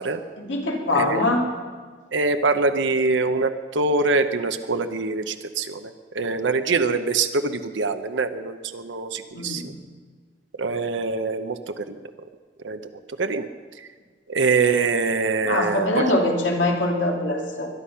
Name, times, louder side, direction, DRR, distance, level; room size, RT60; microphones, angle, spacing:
voice 1, 0.4-1.4 9.3-9.7 15.4-17.7, left 1 dB, 85° left, 1 dB, 2.8 m, -23 dB
voice 2, 2.1-9.7 10.6-12.0 12.6-12.8 13.2-13.5 14.3-16.2, right 3 dB, 85° right, 8 dB, 0.8 m, -24 dB
21.0 x 11.5 x 5.7 m, 1.5 s
head